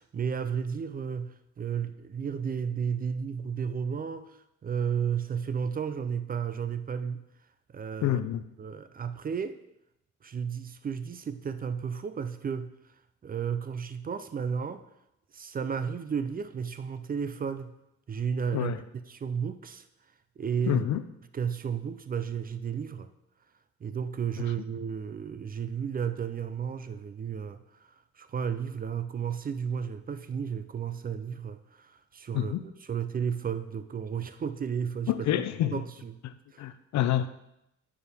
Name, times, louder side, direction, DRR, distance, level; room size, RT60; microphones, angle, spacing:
voice 1, 0.0-7.2 7.7-8.2 8.6-9.6 10.2-12.7 13.2-14.8 15.3-17.7 18.1-18.7 19.1-19.8 20.4-20.9 21.3-23.1 23.8-35.1 35.7-36.1 36.5-36.7, right 7 dB, 30° right, 11 dB, 0.4 m, -33 dB
voice 2, 8.0-8.4 18.5-18.8 20.7-21.0 32.3-32.6 35.1-35.8 36.2-37.3, left 12 dB, 65° left, 13 dB, 0.5 m, -28 dB
8.5 x 4.7 x 3.5 m, 0.84 s
cardioid pair, 90°, 30 cm